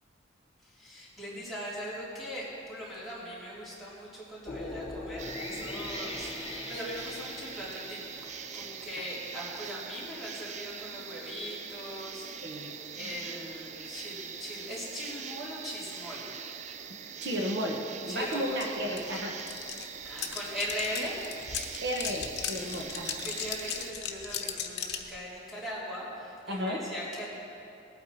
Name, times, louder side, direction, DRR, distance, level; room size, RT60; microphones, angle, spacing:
voice 1, 0.6-12.6 12.9-16.3 16.6-16.8 18.1-18.6 20.0-21.4 22.6-22.8 23.2-27.3, equal, ahead, -9 dB, 3.6 m, -40 dB
sound 1, 4.4-9.6, left 2 dB, 30° left, 1.1 m, -41 dB
sound 2, 5.2-23.9, right 7 dB, 40° right, 0.4 m, -42 dB
voice 2, 17.2-17.8 18.1-19.4 21.8-23.2 26.5-26.8, equal, 60° right, 0 dB, 1.2 m, -33 dB
sound 3, 18.3-18.4 18.6-25.1, left 8 dB, 60° left, 1.0 m, -37 dB
19.0 x 9.0 x 4.3 m, 2.6 s
head